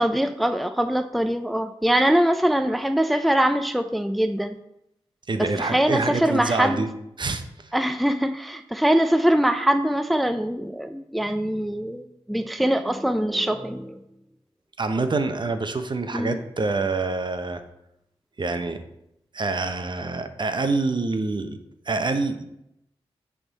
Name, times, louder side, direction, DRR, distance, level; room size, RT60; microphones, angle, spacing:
voice 1, 0.0-4.6 5.4-6.8 7.7-14.0 16.1-16.4, right 1 dB, ahead, 8 dB, 0.5 m, -23 dB
voice 2, 5.3-6.9 7.2-7.7 14.8-17.6 18.4-18.8 19.3-21.6 21.9-22.4, right 3 dB, 45° right, 8 dB, 0.8 m, -26 dB
9.8 x 3.6 x 4.1 m, 0.81 s
cardioid pair, 45°, 10 cm